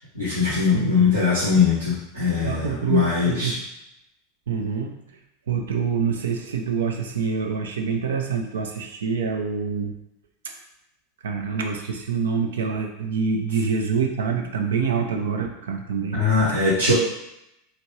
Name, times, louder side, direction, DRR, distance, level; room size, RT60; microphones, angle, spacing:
voice 1, 0.1-3.6 16.2-16.9, left 4 dB, 90° right, -8 dB, 1.1 m, -21 dB
voice 2, 0.7-1.1 2.4-3.6 4.5-5.0 5.5-9.9 11.2-16.2, right 5 dB, 70° right, 4 dB, 0.4 m, -26 dB
2.9 x 2.5 x 3.1 m, 0.83 s
figure-of-eight pair, 85°, 0 cm